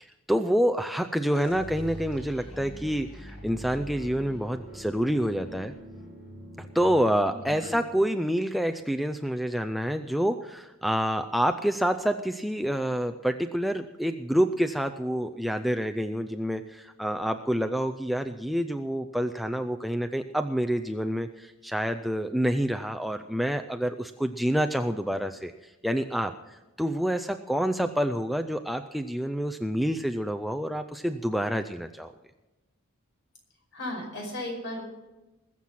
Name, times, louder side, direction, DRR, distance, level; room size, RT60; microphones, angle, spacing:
voice 1, 0.3-5.7 6.6-25.5 25.8-32.1, equal, ahead, 6 dB, 0.4 m, -28 dB
sound 1, 1.3-7.9, equal, 30° left, 6.0 m, -43 dB
voice 2, 7.3-7.7 33.7-34.8, left 1 dB, 55° left, 1 dB, 5.3 m, -36 dB
21.0 x 7.4 x 5.8 m, 1.1 s
head